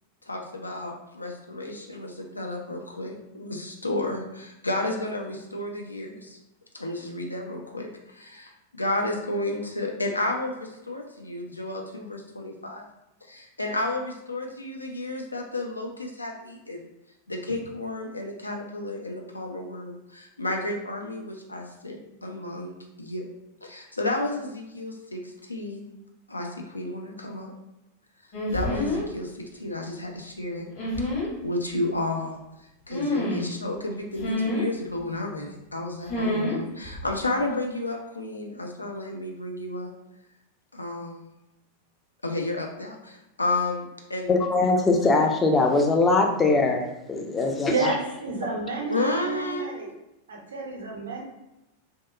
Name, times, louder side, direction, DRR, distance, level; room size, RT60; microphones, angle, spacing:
voice 1, 0.3-6.4 6.7-12.9 13.3-16.9 17.3-23.3 23.6-25.8 26.3-27.5 28.5-30.7 31.4-32.4 32.9-39.9 40.7-41.2 42.2-44.3 48.9-49.7, left 2 dB, 80° left, 2 dB, 0.4 m, -32 dB
sound 1, 28.3-29.1 30.7-31.3 32.9-33.5 34.2-34.7 36.1-36.6 36.8-37.1, left 1 dB, 45° left, 1.0 m, -27 dB
voice 2, 44.3-47.9, left 3 dB, 15° left, 2 dB, 0.4 m, -22 dB
voice 3, 47.7-49.9 50.3-51.2, right 4 dB, 65° right, 0 dB, 0.6 m, -31 dB
2.8 x 2.2 x 2.2 m, 0.91 s
figure-of-eight pair, 90°, 0 cm